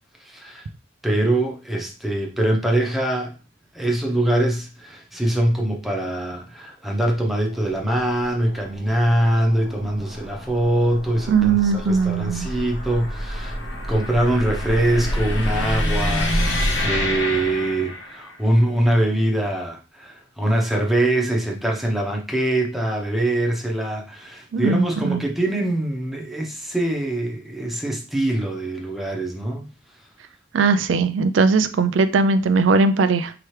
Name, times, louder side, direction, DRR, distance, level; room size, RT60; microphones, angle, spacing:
voice 1, 0.2-0.7 1.0-3.3 3.7-13.6 13.9-29.6, right 1 dB, ahead, 0 dB, 0.8 m, -23 dB
sound 1, 7.0-18.4, left 1 dB, 80° left, 1.1 m, -28 dB
voice 2, 11.3-12.5 24.5-25.2 30.5-33.3, right 4 dB, 90° right, 10 dB, 0.4 m, -19 dB
4.6 x 2.9 x 3.2 m, 0.33 s
head